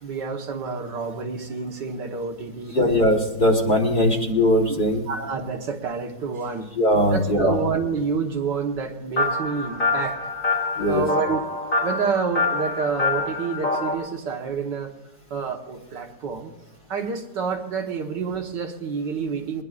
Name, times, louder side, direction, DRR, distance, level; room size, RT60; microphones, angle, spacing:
voice 1, 0.0-2.8 4.7-4.8 5.1-6.7 7.1-10.2 10.9-11.4 11.8-14.9 15.3-16.5 16.9-19.6, right 5 dB, 75° right, 2 dB, 1.9 m, -28 dB
voice 2, 2.7-5.0 6.8-7.6 10.8-11.0, left 1 dB, 30° left, 1 dB, 1.4 m, -20 dB
sound 1, 9.2-13.9, left 3 dB, 45° left, 2.7 m, -25 dB
22.5 x 20.5 x 2.5 m, 1.1 s
omnidirectional pair, 1.9 m